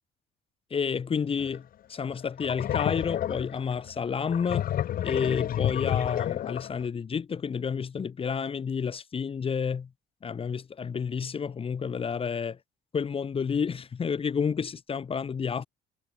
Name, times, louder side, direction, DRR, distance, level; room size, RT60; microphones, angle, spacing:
voice 1, 0.7-1.6 1.9-4.7 5.0-9.9 10.2-12.6 12.9-15.7, left 6 dB, 35° left, 1.7 m, -30 dB
sound 1, 1.4-1.6 2.0-6.9, left 11 dB, 60° left, 1.9 m, -30 dB
cardioid pair, 110°, 17 cm